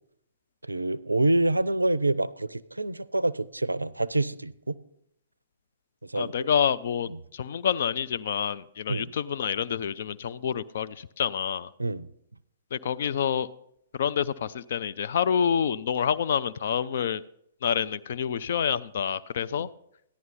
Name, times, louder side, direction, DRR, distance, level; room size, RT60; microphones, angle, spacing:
voice 1, 0.7-4.8 6.0-6.5 7.1-7.2 8.9-9.1 11.8-12.1 19.5-19.7, right 2 dB, 85° right, 20 dB, 0.4 m, -27 dB
voice 2, 6.1-11.7 12.7-13.5 13.9-17.2 17.6-19.7, left 8 dB, 55° left, 14 dB, 0.3 m, -28 dB
14.0 x 11.0 x 4.1 m, 0.76 s
figure-of-eight pair, 115°, 0 cm